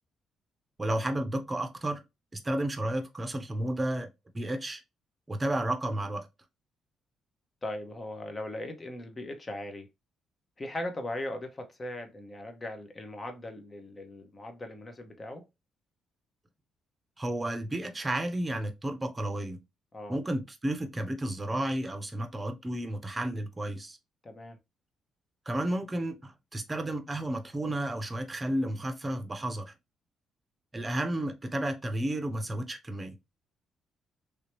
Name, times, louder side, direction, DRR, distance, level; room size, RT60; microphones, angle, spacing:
voice 1, 0.8-2.0 2.3-4.1 4.3-4.8 5.3-6.3 17.2-19.6 20.1-24.0 25.5-29.7 30.7-33.2, right 1 dB, 20° right, 0.8 m, -32 dB
voice 2, 7.6-9.9 10.6-15.4 19.9-20.2 24.2-24.6, left 1 dB, 30° left, 1.0 m, -39 dB
3.3 x 2.8 x 3.1 m
cardioid pair, 90°, 0 cm